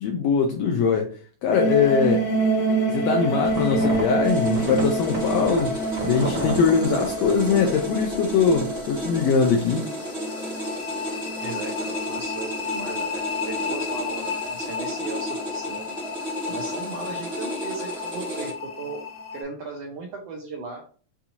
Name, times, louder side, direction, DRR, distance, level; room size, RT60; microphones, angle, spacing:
voice 1, 0.0-1.1 1.4-2.3 2.9-5.7 6.0-9.8, left 6 dB, 90° left, 1.5 m, -22 dB
sound 1, 1.5-19.4, right 1 dB, 70° left, 2.4 m, -28 dB
sound 2, 3.4-7.8 8.1-8.6, right 1 dB, 30° right, 1.3 m, -32 dB
sound 3, 4.2-18.5, equal, 5° right, 0.8 m, -34 dB
voice 2, 11.4-15.9 16.5-19.0 19.3-20.8, right 4 dB, 75° right, 1.5 m, -36 dB
7.0 x 2.8 x 2.6 m
omnidirectional pair, 3.6 m